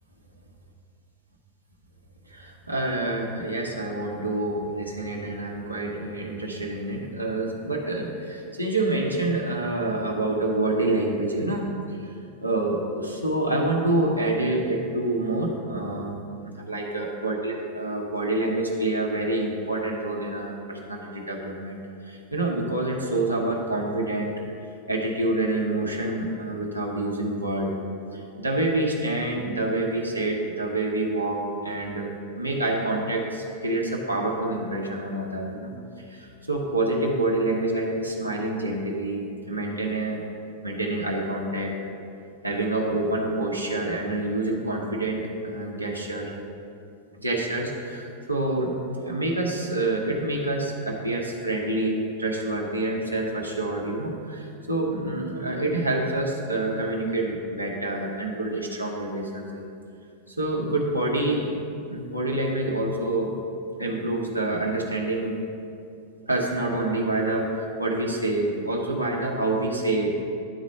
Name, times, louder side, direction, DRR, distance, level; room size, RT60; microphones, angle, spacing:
voice 1, 2.3-11.7 12.4-24.3 24.9-27.8 28.1-40.2 40.6-41.9 42.4-46.3 47.1-59.7 60.3-61.5 61.9-63.3 63.8-65.4 66.3-70.1, right 2 dB, 85° right, -2 dB, 1.0 m, -27 dB
10.0 x 4.1 x 6.5 m, 2.5 s
figure-of-eight pair, 90°, 0 cm